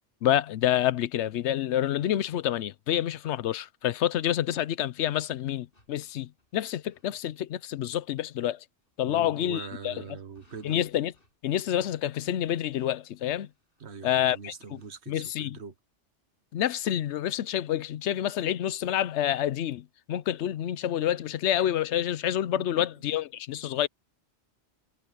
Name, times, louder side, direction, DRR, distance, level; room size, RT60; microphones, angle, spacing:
voice 1, 0.2-8.6 9.0-9.9 10.6-11.1 11.4-13.5 14.0-14.5 15.1-15.6 16.5-23.9, left 11 dB, 80° left, 0.9 m, -28 dB
sound 1, 5.7-7.2 7.8-7.9 8.3-8.5 8.8-9.0 10.3-15.0, left 1 dB, 55° left, 8.2 m, -65 dB
voice 2, 9.1-10.8 13.8-15.7 22.5-22.8, right 6 dB, 70° right, 1.6 m, -42 dB
omnidirectional pair, 1.2 m